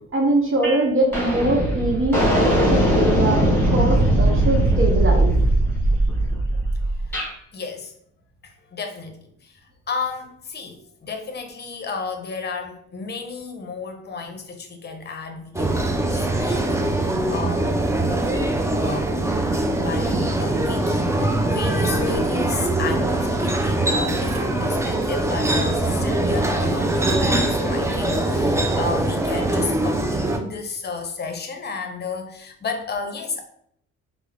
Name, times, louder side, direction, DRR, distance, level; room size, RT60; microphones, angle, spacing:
voice 1, 0.1-5.3, right 1 dB, 45° right, 0 dB, 0.8 m, -22 dB
sound 1, 0.6-0.8 1.1-7.3, right 1 dB, 5° left, 1.4 m, -19 dB
voice 2, 7.5-7.9 8.4-15.8 16.1-17.8 18.8-19.2 19.8-33.4, left 4 dB, 35° left, 5 dB, 0.7 m, -33 dB
sound 2, 15.5-30.4, right 1 dB, 10° right, 0.4 m, -22 dB
3.4 x 2.0 x 3.4 m, 0.67 s
cardioid pair, 90°, 30 cm